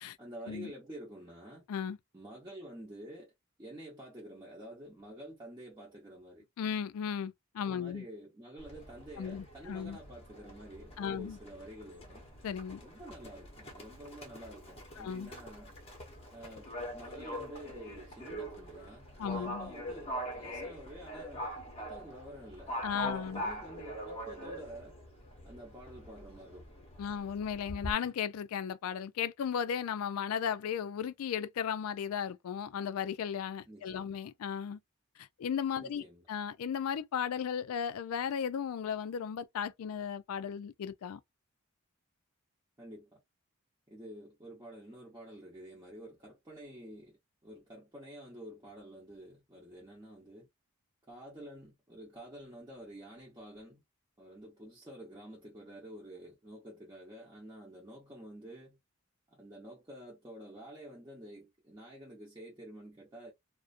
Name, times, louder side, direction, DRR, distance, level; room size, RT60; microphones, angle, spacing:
voice 1, 0.2-1.6 2.1-3.3 3.6-6.5 7.6-12.3 12.8-15.7 16.3-21.5 21.8-24.9 25.4-26.7 33.6-34.2 35.8-36.3 42.8-43.2 43.9-50.5 51.1-53.8 54.2-58.8 59.3-63.3, right 1 dB, 20° right, 0.7 m, -49 dB
voice 2, 6.6-8.0 9.2-10.0 11.0-11.4 12.4-12.8 15.0-15.3 19.2-19.7 22.8-23.4 27.0-34.8 35.2-41.2, left 7 dB, 80° left, 0.3 m, -35 dB
Livestock farm animals working animals, 8.6-27.9, equal, 25° left, 0.8 m, -43 dB
2.4 x 2.1 x 2.4 m
head